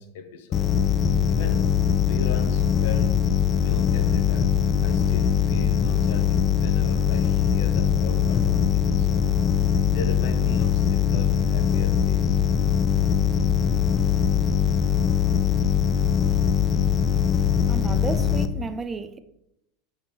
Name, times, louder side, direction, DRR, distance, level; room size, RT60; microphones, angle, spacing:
voice 1, 0.0-3.3 3.6-4.5 4.8-9.3 9.6-12.4, left 5 dB, 60° left, 0.8 m, -38 dB
sound 1, 0.5-18.5, left 8 dB, 30° left, 0.4 m, -21 dB
voice 2, 17.7-19.2, right 4 dB, 20° right, 0.5 m, -32 dB
7.6 x 5.7 x 2.8 m
figure-of-eight pair, 80°, 0 cm